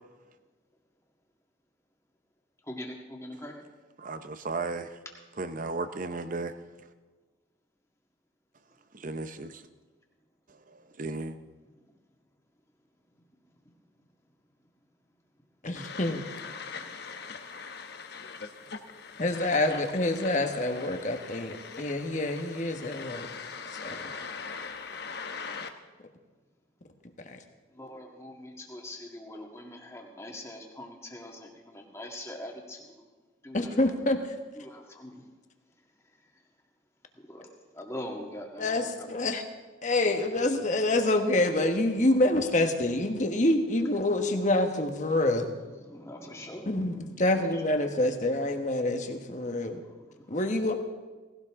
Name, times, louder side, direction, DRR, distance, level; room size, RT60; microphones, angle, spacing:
voice 1, 2.6-3.6 11.6-11.8 13.6-13.7 15.6-15.7 16.6-17.2 17.7-19.4 27.7-33.1 33.4-34.0 34.5-35.3 35.8-36.4 37.1-39.4 40.2-40.3 45.0-47.6 49.4-50.4, left 1 dB, 15° left, 0 dB, 1.8 m, -45 dB
voice 2, 4.0-4.9 5.4-6.5 8.9-9.6 10.7-11.4, right 3 dB, 40° right, 11 dB, 0.7 m, -35 dB
voice 3, 15.6-16.2 19.2-23.3 23.8-24.1 27.2-27.4 33.5-34.2 38.6-39.4 39.8-45.5 46.7-49.8 50.3-50.7, left 1 dB, 35° left, 6 dB, 1.2 m, -27 dB
sound 1, 15.8-25.7, left 5 dB, 55° left, 0.9 m, -41 dB
18.0 x 17.0 x 3.7 m, 1.3 s
head